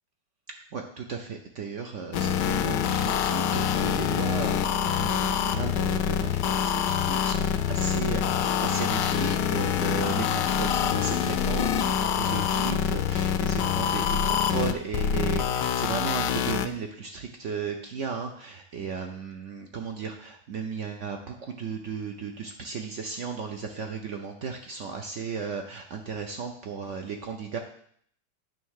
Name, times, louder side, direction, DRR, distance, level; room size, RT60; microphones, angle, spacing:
voice 1, 0.7-27.6, right 5 dB, 65° right, 4 dB, 0.7 m, -35 dB
sound 1, 2.1-16.7, left 8 dB, 75° left, 1.1 m, -26 dB
9.2 x 3.4 x 6.4 m, 0.63 s
omnidirectional pair, 1.9 m